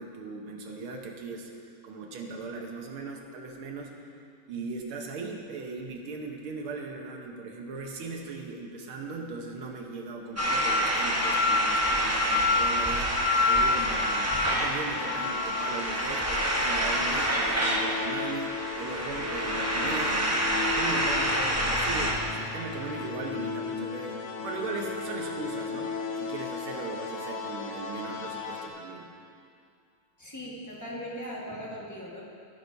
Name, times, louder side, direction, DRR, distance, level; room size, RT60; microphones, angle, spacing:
voice 1, 0.0-4.1 4.5-20.3 20.7-25.9 26.2-29.1, right 3 dB, 75° right, 1 dB, 1.9 m, -38 dB
sound 1, 10.4-22.1, left 1 dB, 20° right, 0.4 m, -27 dB
sound 2, 10.8-28.7, left 4 dB, 90° left, 1.9 m, -36 dB
voice 2, 30.2-32.2, equal, 10° left, -5 dB, 1.2 m, -39 dB
16.0 x 9.9 x 2.7 m, 2.4 s
omnidirectional pair, 2.4 m